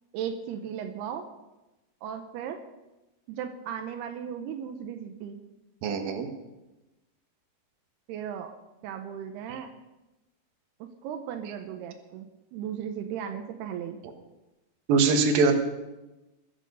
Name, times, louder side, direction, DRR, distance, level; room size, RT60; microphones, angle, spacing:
voice 1, 0.1-1.3 2.0-2.6 3.3-5.4 8.1-8.5 8.8-9.7 10.8-14.0, right 8 dB, 85° right, 5 dB, 3.0 m, -36 dB
voice 2, 5.8-6.3 14.9-15.5, right 4 dB, 70° right, 5 dB, 3.1 m, -22 dB
21.5 x 8.9 x 5.5 m, 1.0 s
omnidirectional pair, 4.5 m